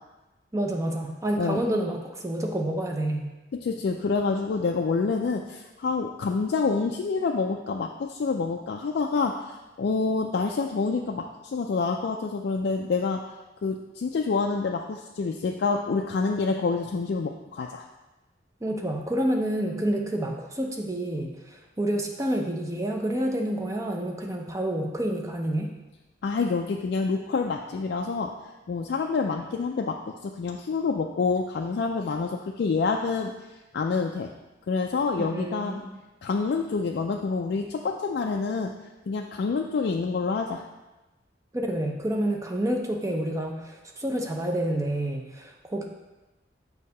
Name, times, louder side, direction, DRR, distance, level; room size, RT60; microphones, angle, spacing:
voice 1, 0.5-3.3 18.6-25.7 35.2-35.9 41.5-45.9, right 1 dB, 15° right, 1 dB, 0.6 m, -28 dB
voice 2, 3.5-13.3 13.6-17.8 26.2-28.3 28.7-33.3 33.7-34.3 34.7-35.8 36.2-38.7 39.1-40.6, left 4 dB, 60° left, 1 dB, 0.3 m, -27 dB
6.4 x 2.8 x 5.4 m, 1.1 s
head